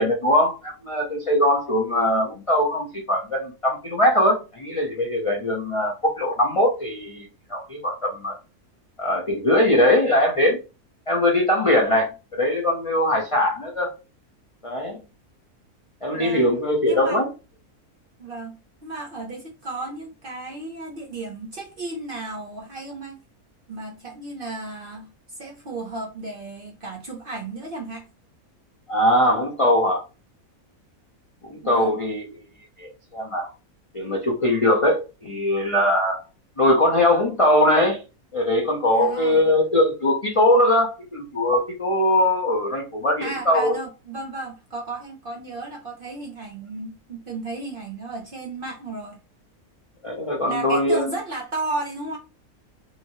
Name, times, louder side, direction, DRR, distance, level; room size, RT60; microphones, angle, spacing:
voice 1, 0.0-8.4 9.0-10.6 11.1-13.9 14.6-15.0 16.0-17.3 28.9-30.0 31.5-32.3 32.8-33.5 33.9-36.2 36.6-38.0 38.3-43.8 50.0-51.1, left 1 dB, 60° left, 0.3 m, -21 dB
voice 2, 16.1-16.5 16.8-17.2 18.2-23.2 23.7-28.1 31.6-32.0 38.9-39.4 43.2-49.2 50.5-52.2, right 2 dB, 55° right, 0.6 m, -34 dB
2.9 x 2.8 x 2.7 m
omnidirectional pair, 1.6 m